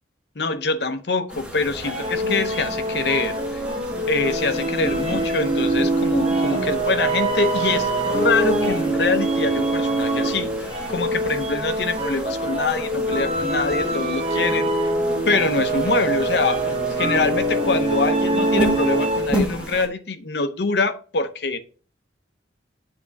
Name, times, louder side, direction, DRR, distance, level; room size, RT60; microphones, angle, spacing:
voice 1, 0.4-3.6 4.1-14.7 15.3-21.6, left 3 dB, 65° left, 0.7 m, -24 dB
sound 1, 1.3-19.9, equal, 5° right, 1.2 m, -33 dB
sound 2, 1.8-19.5, right 1 dB, 35° right, 0.9 m, -24 dB
8.5 x 3.7 x 4.0 m
head